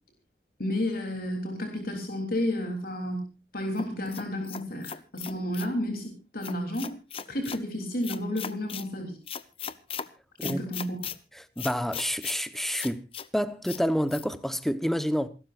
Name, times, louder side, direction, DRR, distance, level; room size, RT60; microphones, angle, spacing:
voice 1, 0.6-6.9 7.3-9.2 10.4-11.0, left 1 dB, 55° left, 3.4 m, -31 dB
sound 1, 3.8-5.7 6.4-7.6 8.0-8.9 9.3-10.1 10.4-11.2 11.6-12.4 12.8-13.3 13.7-13.8 14.1-14.3, left 7 dB, 30° left, 0.8 m, -38 dB
voice 2, 11.3-13.1 13.3-15.3, equal, ahead, 1.0 m, -28 dB
28.0 x 12.5 x 2.5 m
head